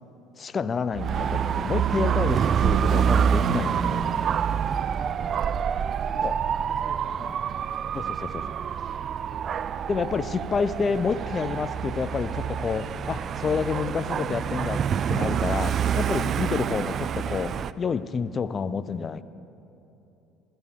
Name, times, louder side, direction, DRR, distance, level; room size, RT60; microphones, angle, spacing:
voice 1, 0.4-4.4 6.2-6.3 7.2-7.3 7.9-8.4 9.9-19.2, left 5 dB, 35° left, 16 dB, 0.4 m, -29 dB
Dog / Motorcycle, 0.9-17.7, right 8 dB, 50° right, 0.3 m, -27 dB
voice 2, 4.5-5.5 6.0-7.2 8.8-9.5, right 3 dB, 25° right, 3 dB, 1.1 m, -48 dB
15.5 x 13.5 x 3.6 m, 2.9 s
supercardioid pair, 80°, 0 cm